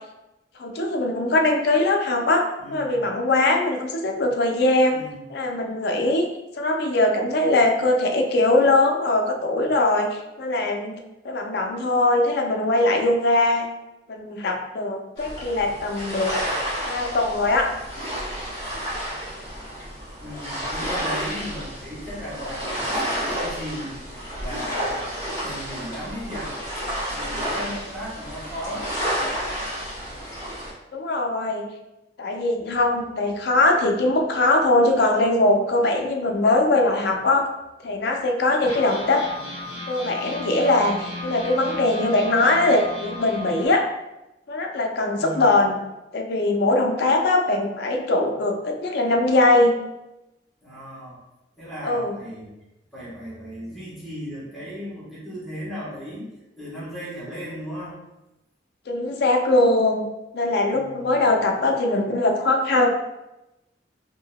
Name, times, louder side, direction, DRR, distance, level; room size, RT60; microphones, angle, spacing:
voice 1, 0.6-5.0 5.3-6.3 6.6-11.0 11.2-13.7 14.1-16.3 16.8-17.7 30.9-31.7 32.2-37.5 37.8-39.2 39.9-43.9 44.5-45.8 46.1-49.8 51.8-52.2 58.9-60.0 60.3-62.9, left 2 dB, 60° left, 3 dB, 0.4 m, -21 dB
voice 2, 2.6-3.1 4.9-5.2 16.3-16.7 20.2-24.0 24.4-26.5 27.1-28.9 39.3-39.5 45.2-45.6 50.6-51.2 51.6-52.5 52.9-56.3 56.6-58.0 60.7-61.1, equal, ahead, -9 dB, 1.2 m, -36 dB
sound 1, 15.2-30.7, equal, 20° left, 1.4 m, -30 dB
sound 2, 32.6-35.8 36.2-36.3 36.6-36.8 37.4-37.5 38.6-43.7, left 1 dB, 40° left, 1.1 m, -36 dB
3.6 x 2.7 x 2.2 m, 0.96 s
head